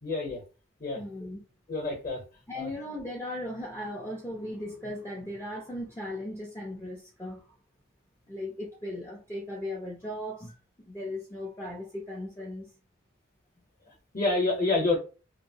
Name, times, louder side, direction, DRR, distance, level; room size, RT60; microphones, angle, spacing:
voice 1, 0.0-0.4 0.8-1.0 1.7-2.2 2.5-2.7 14.1-15.0, left 3 dB, 35° left, 0.8 m, -27 dB
voice 2, 0.9-1.4 2.5-7.5 8.3-10.5 10.9-12.7, left 1 dB, 10° left, 0.5 m, -37 dB
2.8 x 2.0 x 2.7 m
head